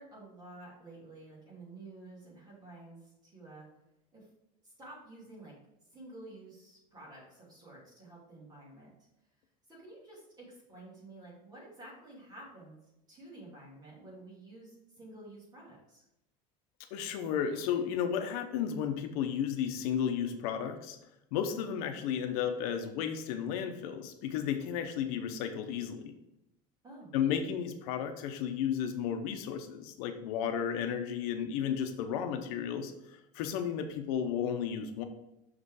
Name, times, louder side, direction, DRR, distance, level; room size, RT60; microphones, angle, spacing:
voice 1, 0.0-3.7 4.1-4.3 4.6-5.5 5.9-8.9 9.7-12.8 13.1-16.0 26.8-27.2, right 2 dB, 20° right, -6 dB, 2.8 m, -51 dB
voice 2, 16.9-21.0 21.3-26.0 27.1-35.0, left 8 dB, 75° left, 6 dB, 0.8 m, -33 dB
6.2 x 4.9 x 4.8 m, 0.90 s
cardioid pair, 170°, 20 cm